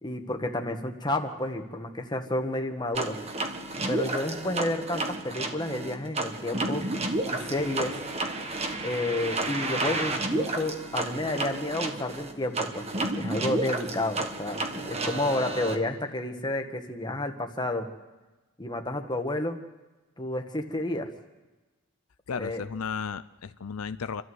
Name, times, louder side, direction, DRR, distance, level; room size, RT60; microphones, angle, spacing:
voice 1, 0.0-3.2 3.9-6.8 7.3-7.9 8.8-17.9 18.6-19.6 20.2-21.1 22.4-22.6, left 1 dB, 20° left, 4 dB, 1.5 m, -30 dB
sound 1, 2.9-15.8, right 2 dB, 30° right, 1.4 m, -31 dB
voice 2, 22.3-24.2, left 6 dB, 90° left, 13 dB, 0.6 m, -34 dB
28.0 x 13.0 x 8.0 m, 1.2 s
head